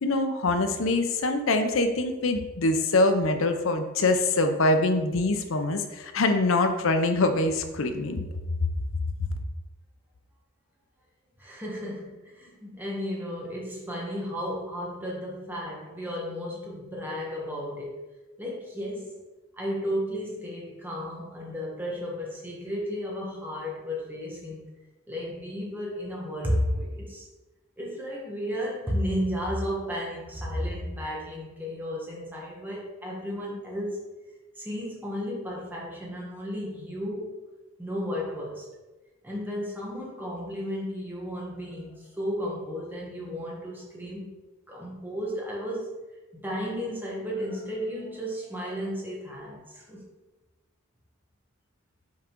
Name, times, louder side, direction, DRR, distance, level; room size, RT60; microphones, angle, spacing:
voice 1, 0.0-8.2 8.6-8.7 9.2-9.3, left 2 dB, 70° left, 7 dB, 0.6 m, -24 dB
voice 2, 11.4-18.0 18.4-19.2 19.5-24.6 25.1-27.3 27.8-34.0 34.6-37.3 37.8-38.7 39.2-44.3 44.7-46.0 46.3-50.0, equal, 10° right, -4 dB, 1.2 m, -33 dB
5.6 x 3.7 x 4.5 m, 1.1 s
head